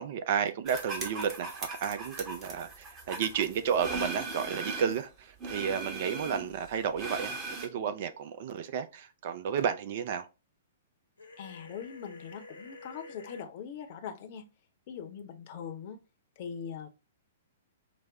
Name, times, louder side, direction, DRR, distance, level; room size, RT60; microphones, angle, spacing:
voice 1, 0.0-10.3, right 7 dB, 50° right, 0.6 m, -32 dB
sound 1, 0.7-5.0 5.4-7.7, right 3 dB, 20° right, 1.1 m, -39 dB
sound 2, 11.2-13.5, left 3 dB, 85° left, 1.1 m, -49 dB
voice 2, 11.4-14.5 14.9-16.0 16.4-16.9, left 7 dB, 45° left, 0.8 m, -41 dB
5.0 x 2.1 x 3.5 m
figure-of-eight pair, 110°, 0 cm